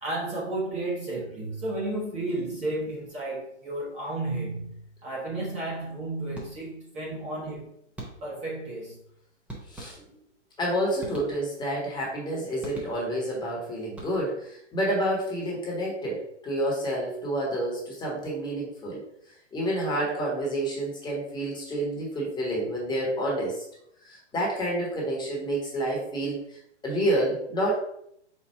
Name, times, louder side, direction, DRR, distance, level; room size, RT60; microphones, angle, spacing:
voice 1, 0.0-7.7 8.2-9.0, right 2 dB, 20° right, -5 dB, 1.0 m, -32 dB
sound 1, 6.3-6.9 8.0-8.5 9.5-10.4 11.0-11.8 12.6-13.3 13.9-14.5, right 2 dB, 5° right, 0.7 m, -43 dB
voice 2, 9.7-10.0 10.6-19.0 19.5-23.6 24.0-26.4 26.8-27.8, right 1 dB, 10° left, -4 dB, 1.2 m, -29 dB
4.4 x 2.3 x 4.5 m, 0.73 s
hypercardioid pair, 125°, 35 cm